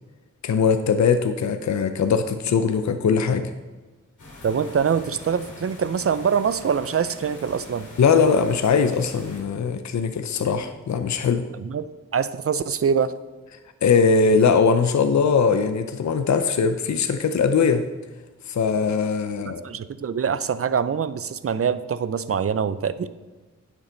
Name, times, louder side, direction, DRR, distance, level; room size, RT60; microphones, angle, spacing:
voice 1, 0.4-3.5 8.0-11.5 13.8-17.9 18.5-19.7, left 5 dB, 65° left, 8 dB, 0.6 m, -21 dB
sound 1, 4.2-9.4, left 2 dB, 85° left, 2.8 m, -43 dB
voice 2, 4.4-7.9 11.6-11.9 12.1-13.1 19.4-23.1, right 7 dB, 50° right, 14 dB, 0.5 m, -24 dB
9.8 x 7.2 x 3.9 m, 1.3 s
wide cardioid pair, 70°, 30 cm